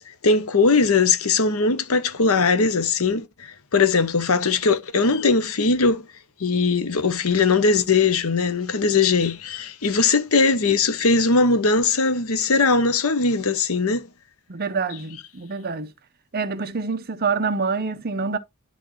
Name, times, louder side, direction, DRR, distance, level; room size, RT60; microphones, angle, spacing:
voice 1, 0.2-6.0 6.4-14.1, left 4 dB, 70° left, 0.8 m, -20 dB
voice 2, 14.5-15.9 16.3-18.4, right 4 dB, 45° right, 0.7 m, -26 dB
11.0 x 3.9 x 3.1 m
head